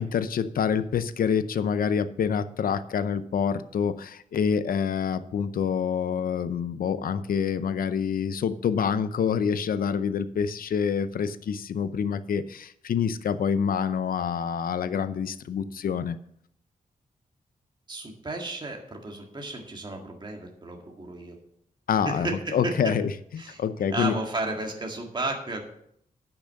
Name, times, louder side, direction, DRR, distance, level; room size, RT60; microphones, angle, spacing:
voice 1, 0.0-16.2 21.9-24.2, left 7 dB, 90° left, 13 dB, 0.6 m, -27 dB
voice 2, 17.9-21.4 22.0-22.7 23.4-23.6 23.9-25.6, right 2 dB, 30° right, 1 dB, 1.8 m, -33 dB
10.5 x 6.1 x 6.5 m, 0.70 s
wide cardioid pair, 110°, 14 cm